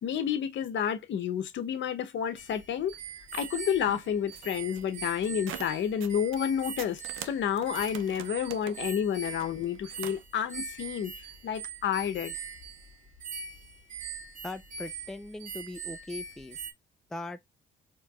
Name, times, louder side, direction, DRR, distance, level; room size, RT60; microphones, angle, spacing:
voice 1, 0.0-2.9 3.3-11.1 11.4-12.3, left 8 dB, 65° left, 0.8 m, -30 dB
sound 1, 2.4-16.7, right 5 dB, 40° right, 1.6 m, -42 dB
sound 2, 3.6-6.5 6.8-10.2, right 11 dB, 85° right, 0.5 m, -45 dB
voice 2, 14.4-16.7 17.1-17.4, left 2 dB, ahead, 0.3 m, -40 dB
4.5 x 3.0 x 2.3 m
cardioid pair, 90°, 20 cm